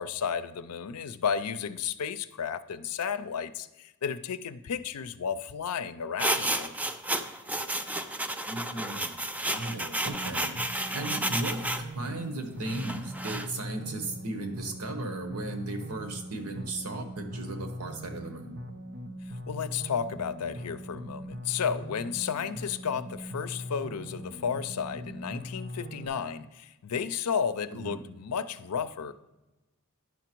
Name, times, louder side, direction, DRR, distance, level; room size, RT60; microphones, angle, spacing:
voice 1, 0.0-6.7 19.3-29.1, left 7 dB, 85° left, 14 dB, 0.5 m, -33 dB
sound 1, 6.2-11.8 12.7-13.5, right 1 dB, 5° right, 0.4 m, -31 dB
voice 2, 8.4-9.2 9.5-10.5 10.9-11.6 11.9-18.5 27.7-28.0, right 2 dB, 90° right, 6 dB, 1.3 m, -36 dB
sound 2, 10.1-26.1, equal, 55° right, 0.8 m, -41 dB
10.5 x 5.9 x 4.5 m, 1.0 s
head